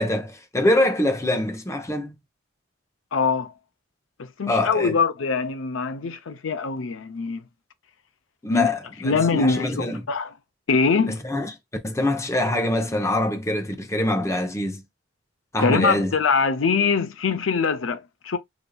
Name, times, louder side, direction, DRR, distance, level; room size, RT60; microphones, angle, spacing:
voice 1, 0.0-2.1 4.5-4.9 8.4-10.0 11.1-11.5 11.8-14.8 15.5-16.1, left 1 dB, 15° left, 0.7 m, -24 dB
voice 2, 3.1-3.5 4.2-7.4 8.5-8.7 9.0-10.3 10.7-11.2 15.6-18.4, left 4 dB, 85° left, 0.6 m, -23 dB
5.0 x 2.6 x 2.3 m
head